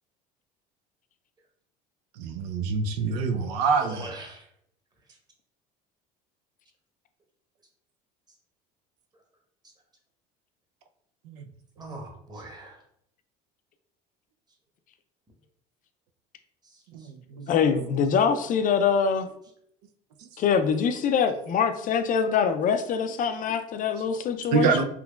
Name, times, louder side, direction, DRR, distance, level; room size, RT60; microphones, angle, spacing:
voice 1, 2.2-4.0 11.3-11.4 16.9-17.5 24.5-24.8, right 5 dB, 80° right, 6 dB, 0.5 m, -26 dB
voice 2, 3.8-4.5 11.8-12.8 16.6-17.1, right 2 dB, 20° right, 0 dB, 1.1 m, -41 dB
voice 3, 17.5-19.3 20.4-24.8, left 6 dB, 45° left, 8 dB, 0.4 m, -24 dB
3.7 x 2.9 x 2.3 m, 0.72 s
supercardioid pair, 85°, 20 cm